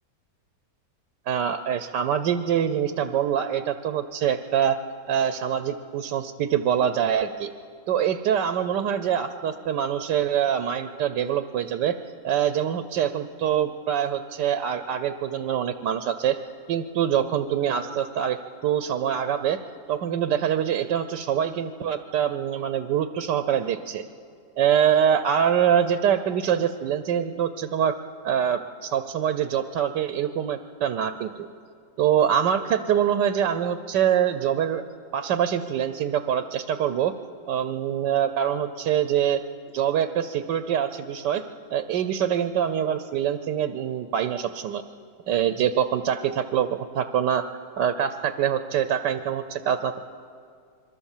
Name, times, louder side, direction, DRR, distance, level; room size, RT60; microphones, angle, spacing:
voice 1, 1.3-4.8 5.1-7.5 7.9-12.0 12.2-16.4 16.7-18.4 18.6-19.6 19.9-24.0 24.6-28.0 28.2-31.5 32.0-34.8 35.1-37.1 37.5-39.4 39.7-41.4 41.7-44.8 45.3-47.4 47.8-50.0, right 9 dB, 90° right, 10 dB, 1.4 m, -24 dB
27.0 x 22.5 x 7.3 m, 2.2 s
omnidirectional pair, 1.8 m